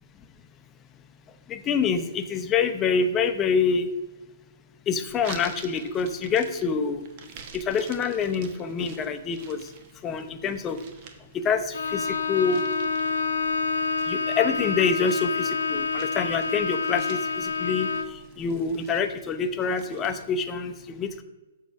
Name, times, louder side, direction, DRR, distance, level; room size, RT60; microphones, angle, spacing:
voice 1, 1.5-3.9 4.9-7.0 7.5-9.6 10.0-10.8 11.3-12.6 14.1-17.9 18.4-21.2, left 5 dB, 25° left, 8 dB, 0.7 m, -26 dB
sound 1, 5.1-20.3, right 6 dB, 45° right, 1.1 m, -48 dB
Bowed string instrument, 11.7-18.2, left 4 dB, 85° left, 0.4 m, -28 dB
7.1 x 4.6 x 6.5 m, 1.2 s
hypercardioid pair, 135°, 0 cm